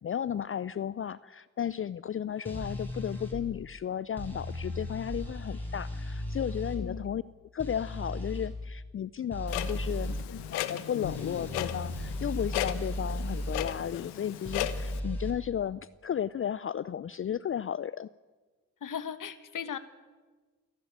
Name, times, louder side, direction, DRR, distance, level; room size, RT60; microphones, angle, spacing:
voice 1, 0.0-7.2 7.5-10.2 10.5-18.1, left 9 dB, 30° left, 18 dB, 0.5 m, -34 dB
sound 1, 2.4-3.4 4.2-6.8 7.6-8.5 9.3-10.2 11.0-13.7 14.4-15.3, equal, 5° left, 7.3 m, -36 dB
Clock, 9.5-15.0, left 14 dB, 75° left, 1.1 m, -36 dB
voice 2, 18.8-19.8, left 8 dB, 50° left, 12 dB, 1.7 m, -37 dB
28.5 x 11.0 x 8.9 m, 1.4 s
hypercardioid pair, 40°, 41 cm